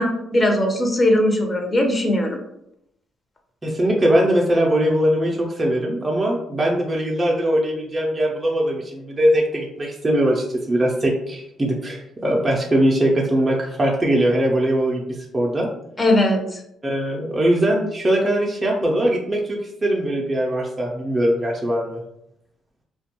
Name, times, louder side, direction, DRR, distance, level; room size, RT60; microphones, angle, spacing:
voice 1, 0.0-2.4 16.0-16.6, left 1 dB, 25° left, 3 dB, 0.5 m, -19 dB
voice 2, 3.6-15.7 16.8-22.0, right 1 dB, 20° right, -2 dB, 0.4 m, -21 dB
2.3 x 2.1 x 2.9 m, 0.78 s
cardioid pair, 90°, 0 cm